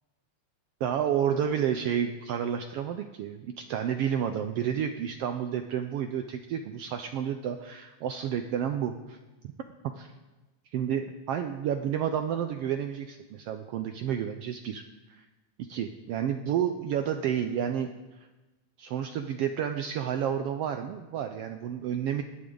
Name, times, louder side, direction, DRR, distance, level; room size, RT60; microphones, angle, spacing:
voice 1, 0.8-9.2 10.0-10.1 10.7-14.8 15.2-15.3 15.6-17.9 18.8-22.2, right 9 dB, 80° right, 7 dB, 1.4 m, -30 dB
19.5 x 12.0 x 3.9 m, 1.1 s
omnidirectional pair, 3.4 m